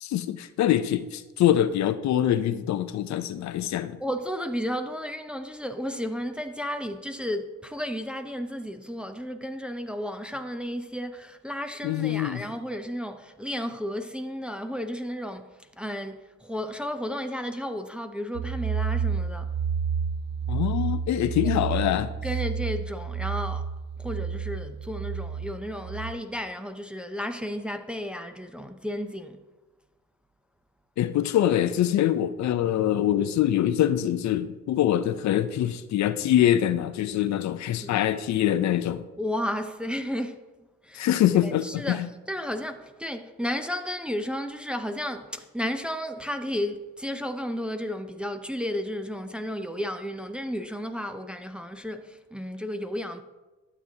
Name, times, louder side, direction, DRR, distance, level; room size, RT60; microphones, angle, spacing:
voice 1, 0.0-4.0 11.8-12.4 20.5-22.1 31.0-39.0 40.9-42.1, left 11 dB, 65° left, 0.5 m, -24 dB
voice 2, 4.0-19.5 22.2-23.7 24.0-29.4 37.8-38.1 39.2-40.4 40.8-41.1 41.4-53.2, equal, 5° right, 0.5 m, -33 dB
sound 1, 18.3-26.1, right 6 dB, 65° right, 0.5 m, -30 dB
12.0 x 7.4 x 2.8 m
cardioid pair, 90°, 30 cm